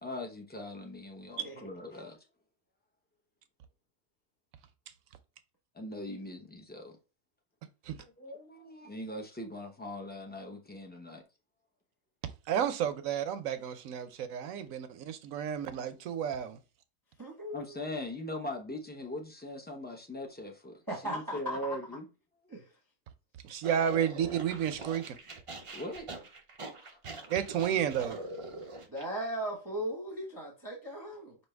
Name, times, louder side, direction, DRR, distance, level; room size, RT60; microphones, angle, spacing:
voice 1, 0.0-2.2 5.7-7.0 8.0-11.2 17.5-22.1 22.4-22.6 25.7-26.1, left 1 dB, 10° left, 0.4 m, -41 dB
voice 2, 12.5-16.6 23.4-25.1 27.3-28.2, right 9 dB, 70° right, 1.0 m, -31 dB
voice 3, 17.2-17.7 20.9-21.8 22.5-22.7 28.9-31.4, right 1 dB, 15° right, 0.8 m, -37 dB
sound 1, 23.6-29.0, right 2 dB, 50° right, 0.4 m, -44 dB
5.4 x 2.8 x 3.3 m
omnidirectional pair, 1.5 m